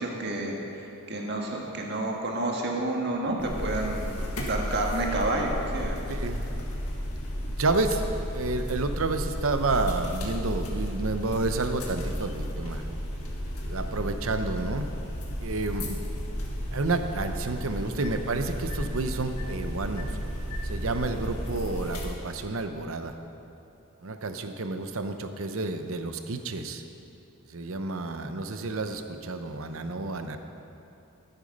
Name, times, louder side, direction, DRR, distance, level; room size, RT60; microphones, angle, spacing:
voice 1, 0.0-4.1 4.5-6.0, right 2 dB, 50° right, 0 dB, 1.6 m, -30 dB
sound 1, 3.4-22.0, equal, 85° left, 1.8 m, -33 dB
voice 2, 6.1-6.5 7.6-8.0 8.3-12.9 13.6-14.9 15.4-16.0 16.7-20.1 20.6-23.1 24.0-26.8 27.5-30.4, right 3 dB, 65° right, 8 dB, 0.7 m, -30 dB
14.0 x 8.1 x 5.3 m, 2.8 s
head